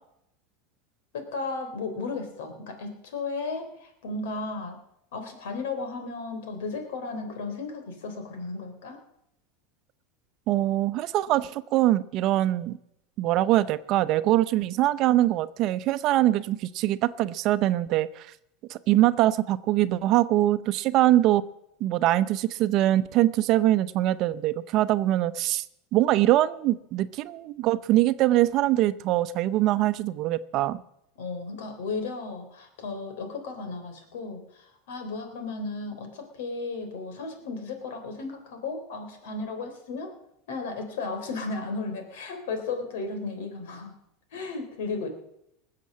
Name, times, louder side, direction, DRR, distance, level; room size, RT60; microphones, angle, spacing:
voice 1, 1.1-4.8 5.1-9.0 31.2-40.1 40.5-43.9 44.3-45.1, left 3 dB, 80° left, 6 dB, 3.6 m, -34 dB
voice 2, 10.5-12.8 13.2-18.3 18.7-21.4 21.8-25.6 25.9-30.8, right 14 dB, 50° right, 13 dB, 0.7 m, -23 dB
20.0 x 7.6 x 7.5 m, 0.79 s
supercardioid pair, 120°, 0 cm